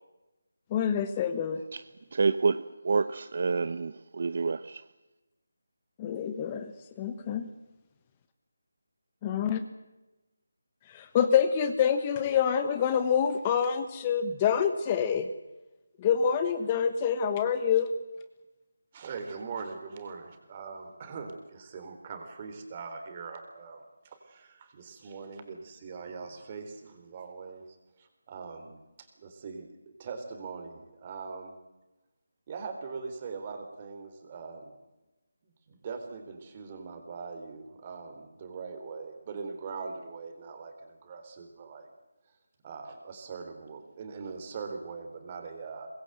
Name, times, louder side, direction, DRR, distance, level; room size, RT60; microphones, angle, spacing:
voice 1, 0.7-1.6 6.0-6.7 7.0-7.5 9.2-9.6 10.9-15.3 16.0-17.9, left 8 dB, 20° left, 1.1 m, -26 dB
voice 2, 2.1-4.8, right 4 dB, 50° right, 0.8 m, -28 dB
voice 3, 18.9-29.7 30.0-31.6 32.5-34.8 35.4-41.9 42.6-45.9, right 5 dB, 25° right, 4.0 m, -41 dB
24.0 x 21.0 x 8.0 m
figure-of-eight pair, 170°, 0 cm